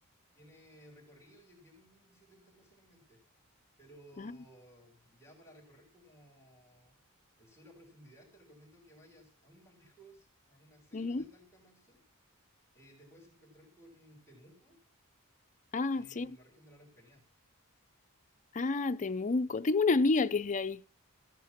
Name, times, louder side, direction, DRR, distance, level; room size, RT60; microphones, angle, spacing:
voice 1, 0.3-3.2 3.8-7.0 7.4-12.0 12.7-14.8 15.9-17.2, equal, 10° left, 3.2 m, -59 dB
voice 2, 10.9-11.3 15.7-16.4 18.5-20.9, left 3 dB, 35° left, 0.5 m, -29 dB
14.0 x 9.2 x 5.8 m
head